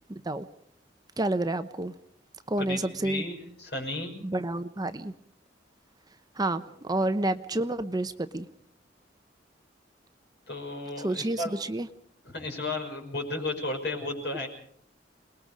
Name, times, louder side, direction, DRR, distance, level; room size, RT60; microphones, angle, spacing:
voice 1, 0.1-0.5 1.2-1.9 2.5-3.2 4.2-5.1 6.4-8.5 11.0-11.9, right 2 dB, 20° right, 11 dB, 0.8 m, -29 dB
voice 2, 2.6-4.1 7.0-7.1 10.5-11.7 12.2-14.5, left 2 dB, 60° left, 3 dB, 5.9 m, -34 dB
28.0 x 20.5 x 5.0 m, 0.68 s
head